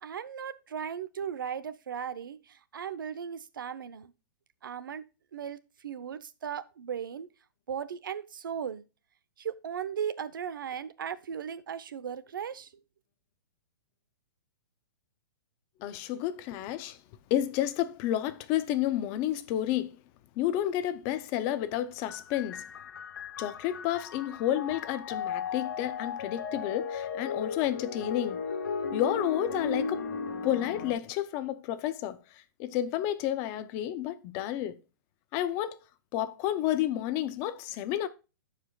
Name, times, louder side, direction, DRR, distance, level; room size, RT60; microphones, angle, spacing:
voice 1, 0.0-4.1 4.6-5.0 5.3-7.3 7.7-8.8 9.4-12.7, right 8 dB, 85° right, 0.8 m, -37 dB
voice 2, 15.8-17.0 17.3-20.0 20.4-22.6 23.4-28.4 28.9-30.1 30.4-34.8 35.3-35.8 36.1-38.1, left 12 dB, 25° left, 0.5 m, -31 dB
sound 1, 22.1-30.9, left 5 dB, 70° left, 1.6 m, -36 dB
15.0 x 5.0 x 2.3 m
hypercardioid pair, 170°, 11 cm